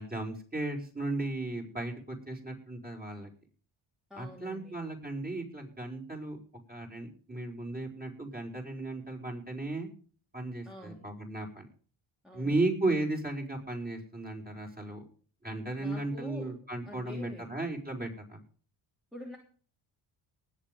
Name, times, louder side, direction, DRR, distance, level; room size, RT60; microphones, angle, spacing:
voice 1, 0.0-3.3 4.1-6.4 6.7-9.9 10.3-11.7 12.3-15.0 15.4-18.4, right 2 dB, 20° right, 0 dB, 5.4 m, -35 dB
voice 2, 4.1-4.8 10.6-11.1 12.2-12.6 15.8-16.6 16.8-17.5 19.1-19.4, equal, ahead, -1 dB, 3.1 m, -46 dB
19.5 x 7.5 x 5.3 m, 0.42 s
cardioid pair, 90°, 50 cm